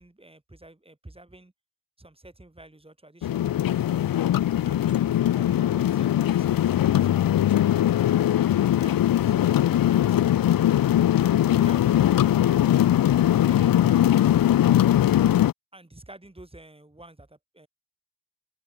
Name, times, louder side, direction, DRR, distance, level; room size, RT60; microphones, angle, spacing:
voice 1, 0.0-1.5 2.0-3.8 4.6-7.9 8.5-9.5 9.9-10.4 11.4-12.7 13.4-14.1 15.7-17.7, right 1 dB, 15° right, 3.1 m, -49 dB
sound 1, 3.2-15.5, left 12 dB, 65° left, 0.5 m, -21 dB
wide cardioid pair, 85°, 36 cm